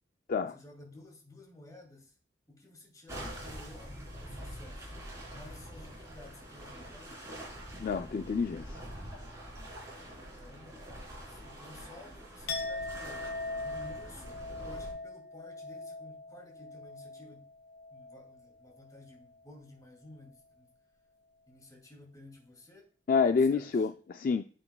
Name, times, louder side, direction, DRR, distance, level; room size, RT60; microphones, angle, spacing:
voice 1, 0.5-2.2 2.5-4.9 5.3-7.2 9.9-10.8 11.1-13.3 13.6-17.5 17.9-20.7 21.5-22.9 23.3-23.9, left 2 dB, 20° left, 2.4 m, -53 dB
sound 1, 3.1-14.9, equal, 20° right, 3.7 m, -45 dB
voice 2, 7.8-8.8 23.1-24.5, left 5 dB, 50° left, 0.3 m, -28 dB
Chink clink, 12.5-18.4 18.7-19.1, left 2 dB, 75° left, 0.9 m, -41 dB
9.6 x 7.7 x 2.3 m
head